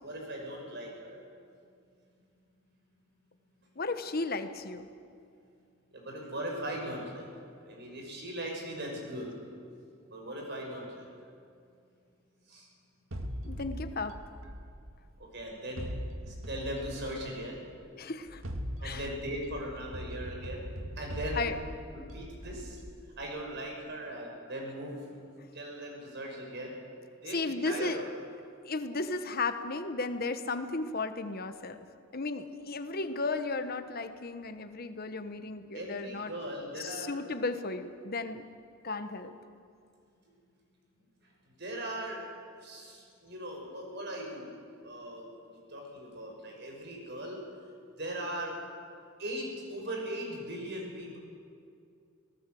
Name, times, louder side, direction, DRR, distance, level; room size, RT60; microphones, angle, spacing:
voice 1, 0.0-1.2 5.9-7.3 7.6-9.3 10.1-11.0 12.5-12.7 15.2-15.9 16.3-17.6 18.8-20.6 21.0-21.5 21.9-22.8 23.2-26.8 27.2-28.0 35.7-37.1 41.6-42.2 42.6-44.5 44.8-45.3 45.7-47.4 48.0-48.6 49.2-51.2, right 1 dB, 55° right, 0 dB, 5.9 m, -39 dB
voice 2, 3.8-4.9 13.4-14.2 18.0-18.4 18.8-19.1 21.3-21.6 27.3-28.0 28.6-31.8 32.1-36.3 36.8-38.4 38.8-39.3, left 3 dB, 50° left, 9 dB, 1.2 m, -34 dB
sound 1, 13.1-15.2 15.8-17.6 18.3-23.3, equal, 85° right, 2.1 m, -41 dB
25.5 x 18.5 x 7.8 m, 2.4 s
head